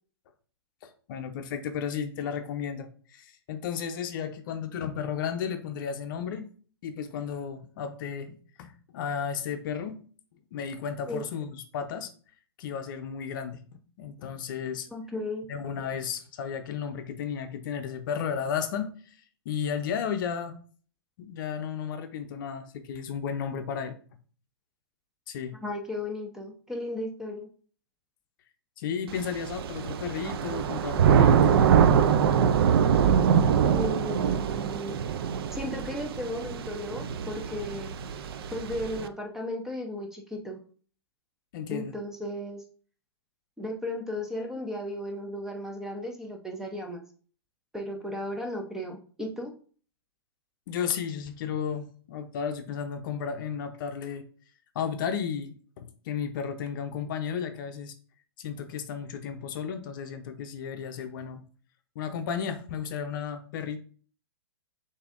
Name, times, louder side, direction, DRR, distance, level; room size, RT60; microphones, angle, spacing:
voice 1, 0.8-6.5 6.8-10.0 10.5-12.1 12.6-14.9 15.5-19.2 19.5-20.6 21.2-23.9 25.3-25.6 28.8-32.0 41.5-41.9 50.7-54.3 54.7-57.9 58.4-61.4 62.0-63.8, left 7 dB, 50° left, 8 dB, 0.6 m, -34 dB
voice 2, 14.9-15.5 25.6-27.5 33.7-35.0 35.5-37.9 38.5-40.6 41.7-42.6 43.6-47.0 47.7-49.5, left 1 dB, 5° right, 2 dB, 0.6 m, -35 dB
Thunder / Rain, 29.1-39.1, right 7 dB, 60° right, 0.4 m, -24 dB
6.7 x 2.7 x 2.5 m, 0.42 s
hypercardioid pair, 125°, 14 cm